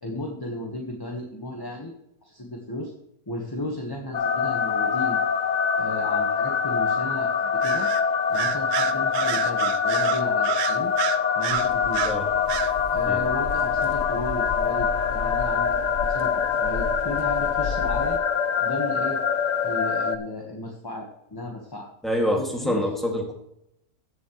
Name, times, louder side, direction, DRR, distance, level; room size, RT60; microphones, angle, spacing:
voice 1, 0.0-1.9 2.2-2.9 3.3-5.2 5.8-7.9 8.3-10.9 11.3-12.1 12.9-18.2 18.6-19.2 19.6-21.9 22.3-22.8, left 1 dB, 15° left, 1 dB, 1.2 m, -34 dB
sound 1, 4.1-20.2, left 6 dB, 85° left, 0.3 m, -24 dB
Bird vocalization bird call bird song, 7.6-8.0 8.3-12.2 12.5-12.7, right 11 dB, 75° right, 1.1 m, -28 dB
sound 2, 11.5-18.2, left 5 dB, 45° left, 0.7 m, -35 dB
voice 2, 22.0-23.3, equal, ahead, 0 dB, 2.0 m, -26 dB
15.5 x 7.4 x 3.1 m, 0.79 s
omnidirectional pair, 1.6 m